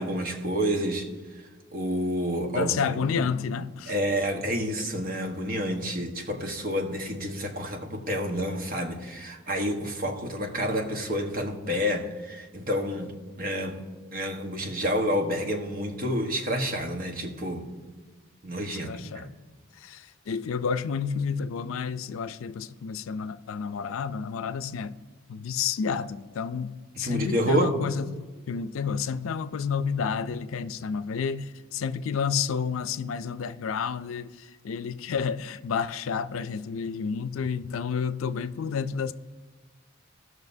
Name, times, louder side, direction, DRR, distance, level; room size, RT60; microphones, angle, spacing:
voice 1, 0.0-1.4 1.7-2.8 3.1-3.3 3.9-13.1 13.4-13.8 14.1-17.7 18.4-19.3 26.9-27.8, equal, 45° right, 1.2 m, -29 dB
voice 2, 2.5-3.9 18.7-19.3 19.8-25.0 25.3-39.1, left 6 dB, 90° left, 0.4 m, -30 dB
18.0 x 6.2 x 2.7 m
head